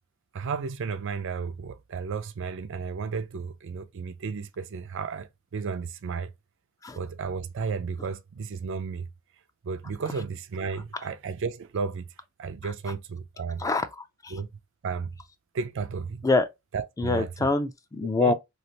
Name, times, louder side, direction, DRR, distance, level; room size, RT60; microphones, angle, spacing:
voice 1, 0.3-6.3 6.9-9.1 9.6-12.1 12.4-13.7 14.3-14.5 14.8-15.1 15.5-16.3 16.7-17.5 18.2-18.3, right 5 dB, 65° right, 0.4 m, -33 dB
voice 2, 13.6-14.3 16.2-16.5 17.0-18.3, left 3 dB, 15° left, 0.3 m, -25 dB
3.2 x 2.4 x 2.8 m
head